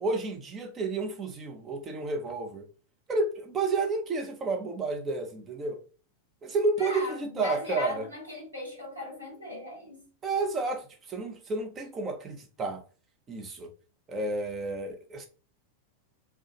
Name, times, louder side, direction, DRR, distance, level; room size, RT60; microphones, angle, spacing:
voice 1, 0.0-2.7 3.1-5.8 6.4-8.0 10.2-12.8 13.3-13.7 14.1-15.3, right 3 dB, 25° right, 0.6 m, -31 dB
voice 2, 6.8-10.0, left 3 dB, 85° right, 1.1 m, -38 dB
2.3 x 2.2 x 2.8 m
figure-of-eight pair, 90°, 0 cm